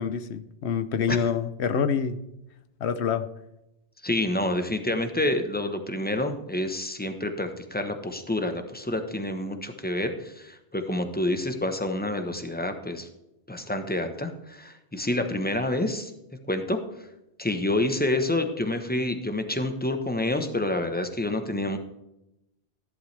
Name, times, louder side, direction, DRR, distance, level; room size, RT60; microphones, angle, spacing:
voice 1, 0.0-2.2 2.8-3.3, left 7 dB, 75° left, 12 dB, 1.0 m, -26 dB
voice 2, 4.0-13.1 13.5-16.1 16.5-16.8 17.4-21.8, left 1 dB, 10° left, 6 dB, 1.0 m, -28 dB
14.5 x 11.5 x 3.4 m, 0.88 s
omnidirectional pair, 1.1 m